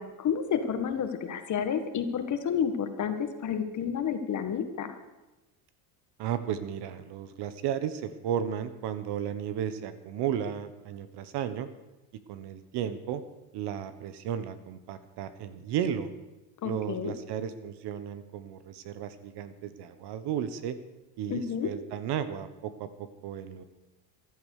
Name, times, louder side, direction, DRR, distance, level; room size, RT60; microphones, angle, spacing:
voice 1, 0.0-4.9 16.6-17.1 21.3-21.7, left 7 dB, 40° left, 8 dB, 1.7 m, -30 dB
voice 2, 6.2-11.7 12.3-13.2 13.5-16.1 16.6-20.8 21.2-23.6, right 9 dB, 55° right, 12 dB, 1.4 m, -34 dB
14.5 x 11.0 x 6.6 m, 1.1 s
supercardioid pair, 120°, 47 cm